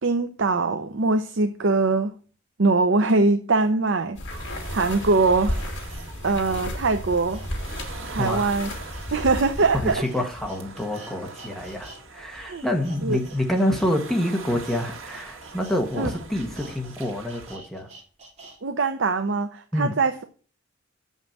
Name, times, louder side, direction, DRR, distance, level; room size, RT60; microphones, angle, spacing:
voice 1, 0.0-2.1 2.6-4.2 4.7-5.6 6.2-7.4 8.1-8.7 9.1-10.0 12.5-12.6 13.0-13.2 16.0-16.1 18.6-20.2, right 3 dB, 65° right, 0.7 m, -22 dB
sound 1, 3.9-4.0 4.6-12.0 12.3-18.6 19.0-19.1, right 2 dB, 35° right, 2.6 m, -48 dB
sound 2, 4.1-9.9, left 1 dB, 60° left, 2.7 m, -33 dB
sound 3, 4.3-17.6, right 4 dB, 80° right, 2.0 m, -43 dB
voice 2, 8.2-8.5 9.7-17.9 19.7-19.9, left 1 dB, ahead, 1.4 m, -27 dB
7.4 x 5.5 x 7.3 m
head